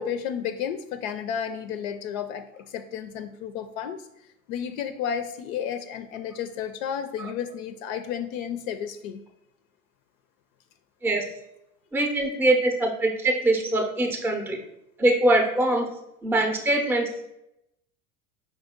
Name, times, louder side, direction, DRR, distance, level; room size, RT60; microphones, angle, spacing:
voice 1, 0.0-4.1 4.5-9.2, left 8 dB, 65° left, 9 dB, 0.5 m, -32 dB
voice 2, 11.9-14.6 15.0-15.9 16.2-17.1, right 1 dB, 5° right, 4 dB, 0.5 m, -23 dB
5.0 x 2.7 x 3.6 m, 0.83 s
hypercardioid pair, 95°, 44 cm